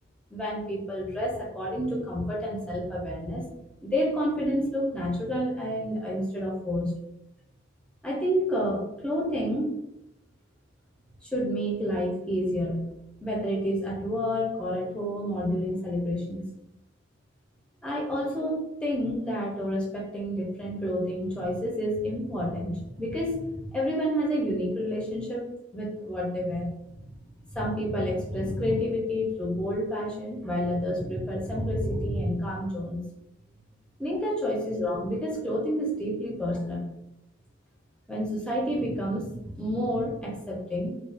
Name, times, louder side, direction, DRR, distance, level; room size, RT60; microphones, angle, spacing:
voice 1, 0.3-3.5 3.8-6.9 8.0-9.8 11.2-16.4 17.8-25.4 25.7-26.7 27.1-27.2 27.5-33.0 34.0-36.9 38.1-41.0, equal, 5° left, -3 dB, 0.5 m, -29 dB
2.4 x 2.2 x 2.4 m, 0.85 s
head